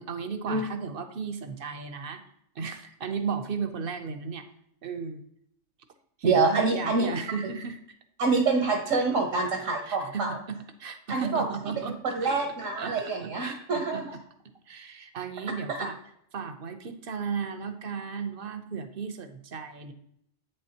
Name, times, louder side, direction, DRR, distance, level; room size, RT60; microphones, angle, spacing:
voice 1, 0.0-2.2 2.5-4.5 4.8-5.2 6.2-7.8 9.9-12.4 12.8-14.0 14.7-16.0 16.3-19.9, right 5 dB, 50° right, 9 dB, 0.9 m, -35 dB
voice 2, 6.2-7.1 8.2-10.3 11.1-11.4 12.0-14.2 15.7-15.8, right 4 dB, 80° right, 3 dB, 1.4 m, -26 dB
8.5 x 6.8 x 2.8 m, 0.72 s
omnidirectional pair, 1.3 m